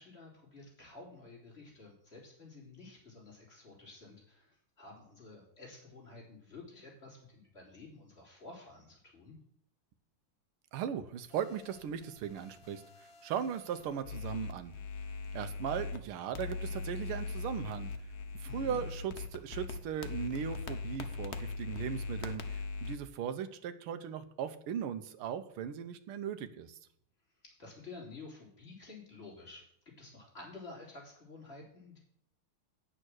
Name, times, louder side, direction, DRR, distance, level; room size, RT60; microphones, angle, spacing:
voice 1, 0.0-9.3 18.4-18.8 27.4-29.6 30.0-32.0, left 3 dB, 25° left, -4 dB, 4.1 m, -51 dB
voice 2, 10.7-14.8 15.3-17.9 18.4-26.8, right 8 dB, 80° right, 10 dB, 1.7 m, -38 dB
sound 1, 11.3-16.0 16.3-23.0, left 4 dB, 65° left, 0.6 m, -41 dB
8.9 x 6.5 x 6.2 m, 0.69 s
omnidirectional pair, 2.4 m